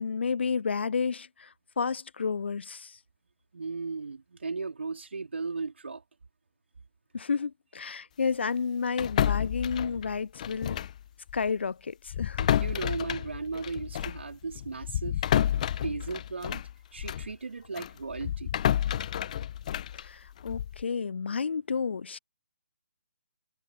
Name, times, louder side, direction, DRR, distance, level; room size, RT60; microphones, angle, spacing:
voice 1, 0.0-3.0 7.1-10.8 11.3-12.4 19.9-22.2, left 5 dB, 55° left, 0.3 m, -31 dB
voice 2, 3.5-6.0 12.4-15.2 15.7-16.6 16.9-18.5, right 4 dB, 60° right, 3.5 m, -36 dB
sound 1, 9.0-11.0 11.3-11.5 12.1-17.3 17.8-20.8, left 10 dB, 35° left, 0.8 m, -30 dB
figure-of-eight pair, 140°, 7 cm